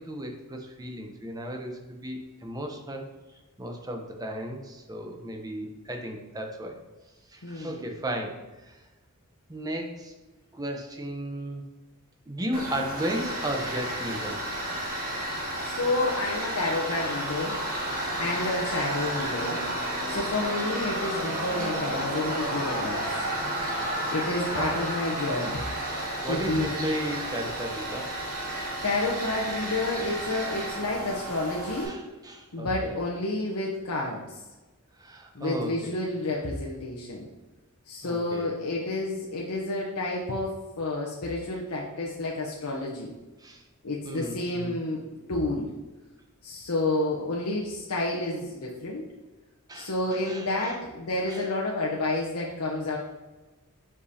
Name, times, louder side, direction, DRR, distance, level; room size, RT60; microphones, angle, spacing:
voice 1, 0.0-3.1 3.6-6.8 7.3-8.8 9.5-10.1 10.5-11.6 12.3-14.4 24.5-24.8 26.2-28.1 31.8-32.9 35.0-36.0 38.0-38.5 43.4-43.6 44.0-44.8 49.7-50.8 51.3-51.4, right 1 dB, 15° right, 3 dB, 0.7 m, -35 dB
voice 2, 7.4-7.9 15.6-17.6 18.2-19.6 20.1-23.1 24.1-25.6 26.3-26.7 28.8-32.0 32.5-34.4 35.3-37.3 37.9-43.1 43.8-45.7 46.4-49.1 49.7-53.0, left 2 dB, 80° left, -3 dB, 0.8 m, -30 dB
Tools, 12.5-31.8, right 1 dB, 40° right, 1.5 m, -32 dB
7.4 x 4.9 x 2.8 m, 1.1 s
head